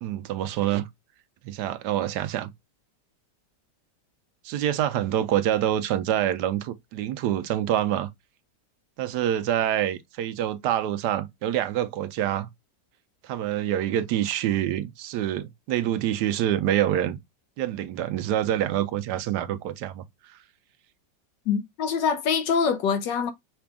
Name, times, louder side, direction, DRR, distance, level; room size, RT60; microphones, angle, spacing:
voice 1, 0.0-0.9 1.4-2.5 4.4-8.1 9.0-12.5 13.2-17.2 17.6-20.4, right 11 dB, 75° right, 1.1 m, -26 dB
voice 2, 21.5-23.3, left 6 dB, 90° left, 1.6 m, -24 dB
5.8 x 2.3 x 3.5 m
omnidirectional pair, 1.9 m